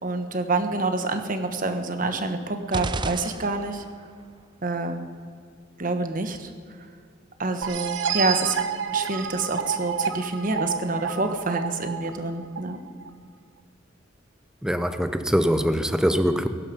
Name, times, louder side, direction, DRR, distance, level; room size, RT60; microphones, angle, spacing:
voice 1, 0.0-3.8 4.6-5.0 5.8-6.5 7.4-8.6 8.9-12.8, right 3 dB, 45° right, 7 dB, 1.3 m, -27 dB
sound 1, 2.7-4.0, right 3 dB, 25° right, 0.5 m, -32 dB
sound 2, 7.6-13.1, right 7 dB, 80° right, 0.8 m, -30 dB
voice 2, 14.6-16.5, equal, 5° right, 9 dB, 0.8 m, -23 dB
21.5 x 11.5 x 5.3 m, 2.2 s
head